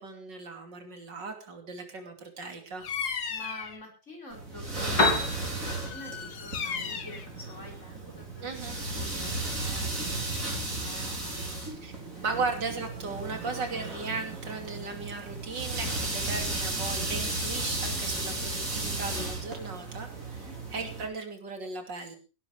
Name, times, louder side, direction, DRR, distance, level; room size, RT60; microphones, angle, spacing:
voice 1, 0.0-2.9 8.4-8.8 11.8-11.9 12.2-20.4 20.7-22.2, right 4 dB, 80° right, 5 dB, 3.5 m, -36 dB
Bird vocalization bird call bird song, 2.8-3.8 5.7-7.3, left 6 dB, 60° left, 1.9 m, -35 dB
voice 2, 3.3-5.1 5.5-11.6 12.1-12.4 20.3-20.6, left 1 dB, 40° left, 1 dB, 5.8 m, -48 dB
sound 1, 4.3-21.1, right 2 dB, 45° right, 5.1 m, -34 dB
Piano, 4.7-12.7, left 2 dB, 80° left, 5.1 m, -35 dB
17.0 x 12.0 x 4.9 m, 0.34 s
omnidirectional pair, 1.9 m